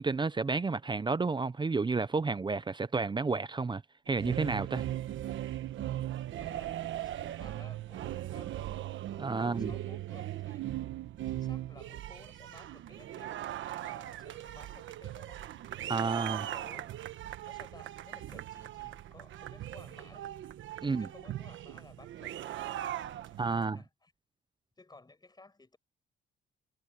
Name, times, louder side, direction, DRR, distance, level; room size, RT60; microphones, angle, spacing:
voice 1, 0.0-3.8 4.1-4.8 9.2-9.7 15.9-16.5 20.8-21.1 23.4-23.8, right 4 dB, 25° right, 0.7 m, -31 dB
sound 1, 4.1-23.6, right 13 dB, 75° right, 1.3 m, -39 dB
voice 2, 6.3-8.7 9.4-10.7 11.3-15.4 16.3-17.0 17.4-20.3 20.8-22.9 23.2-24.1 24.8-25.8, left 3 dB, 20° left, 7.9 m, -56 dB
cardioid pair, 90°, 20 cm